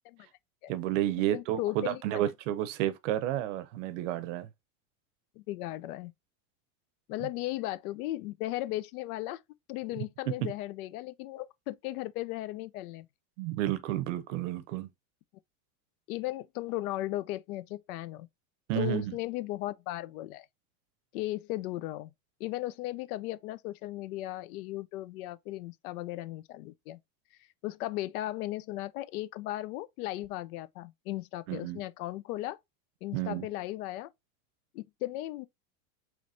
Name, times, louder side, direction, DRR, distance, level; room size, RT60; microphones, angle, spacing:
voice 1, 0.7-4.5 7.2-7.3 10.3-10.5 13.4-14.9 18.7-19.2 31.5-31.8 33.1-33.5, right 13 dB, 55° right, 0.6 m, -31 dB
voice 2, 1.3-2.2 5.4-6.1 7.1-9.4 9.7-13.1 16.1-18.3 18.7-20.5 21.1-22.1 22.4-27.0 27.6-32.6 33.0-34.1 34.7-35.5, left 16 dB, 80° left, 0.5 m, -36 dB
4.9 x 3.1 x 2.6 m
supercardioid pair, 170°, 44 cm